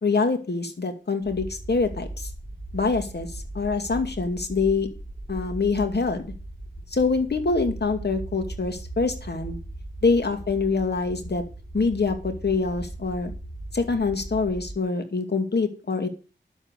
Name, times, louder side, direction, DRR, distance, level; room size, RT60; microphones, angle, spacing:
voice 1, 0.0-2.3 2.7-4.9 5.3-6.3 6.9-9.6 10.0-11.4 11.7-13.3 13.7-16.1, left 4 dB, 55° left, 6 dB, 2.4 m, -25 dB
sound 1, 1.2-14.7, right 2 dB, ahead, 3.2 m, -38 dB
10.5 x 7.1 x 8.1 m, 0.34 s
wide cardioid pair, 65°, 20 cm